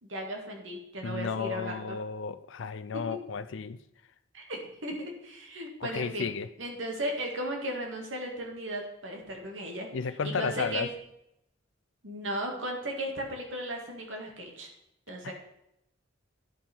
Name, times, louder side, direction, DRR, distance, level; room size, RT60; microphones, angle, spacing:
voice 1, 0.0-2.0 2.9-3.0 4.3-6.3 6.6-9.9 10.2-10.9 12.0-14.7 15.1-15.3, right 1 dB, 70° right, 2.0 m, -36 dB
voice 2, 1.0-3.8 5.8-6.5 9.9-10.9, left 5 dB, 70° left, 0.5 m, -33 dB
11.0 x 5.5 x 4.5 m
head